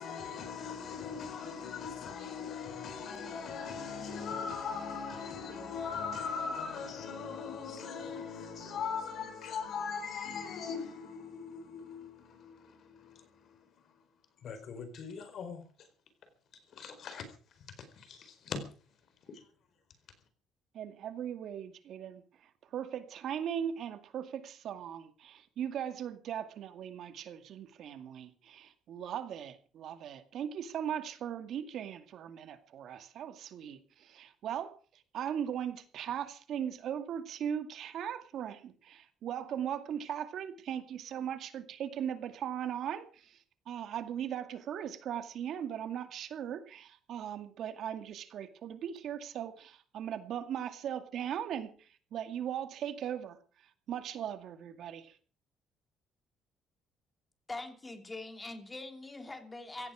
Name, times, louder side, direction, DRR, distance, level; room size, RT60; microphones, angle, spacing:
voice 1, 0.0-13.6 14.4-15.6 16.7-17.3 17.8-18.6 19.3-19.4, left 6 dB, 60° left, 4.5 m, -40 dB
voice 2, 20.7-34.7 35.1-43.4 43.7-53.4 53.9-55.2, right 9 dB, 65° right, 2.2 m, -39 dB
voice 3, 57.5-59.9, left 2 dB, 20° left, 3.3 m, -43 dB
16.5 x 15.5 x 5.0 m
cardioid pair, 105°, 0 cm